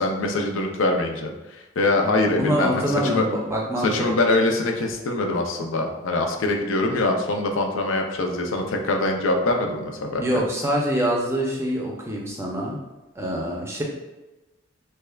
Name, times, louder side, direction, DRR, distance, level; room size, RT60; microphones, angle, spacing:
voice 1, 0.0-3.3 3.8-10.2, left 2 dB, 85° left, 2 dB, 0.5 m, -23 dB
voice 2, 2.4-4.1 10.2-12.8 13.2-13.8, equal, 15° right, -2 dB, 0.5 m, -25 dB
3.4 x 3.2 x 2.3 m, 1.1 s
head